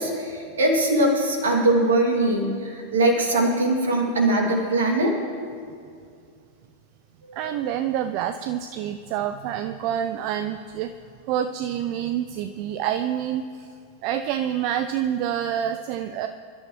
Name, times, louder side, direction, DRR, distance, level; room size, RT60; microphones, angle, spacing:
voice 1, 0.0-5.1 7.2-7.4, right 1 dB, 65° right, 1 dB, 2.3 m, -21 dB
voice 2, 7.3-10.9 11.3-13.7 14.0-16.3, right 10 dB, 45° right, 9 dB, 0.4 m, -27 dB
21.5 x 12.0 x 3.1 m, 2.3 s
figure-of-eight pair, 90°, 0 cm